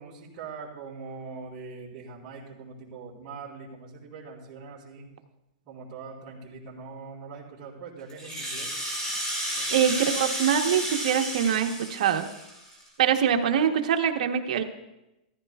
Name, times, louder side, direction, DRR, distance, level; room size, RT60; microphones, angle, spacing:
voice 1, 0.0-5.1 5.6-8.8 9.5-10.1, right 4 dB, 30° right, -8 dB, 3.5 m, -42 dB
Rattle (instrument), 8.1-12.9, equal, 15° left, 2.5 m, -32 dB
voice 2, 9.7-12.3 13.0-14.6, right 8 dB, 70° right, 6 dB, 1.0 m, -24 dB
15.0 x 14.0 x 2.4 m, 0.95 s
supercardioid pair, 155°, 4 cm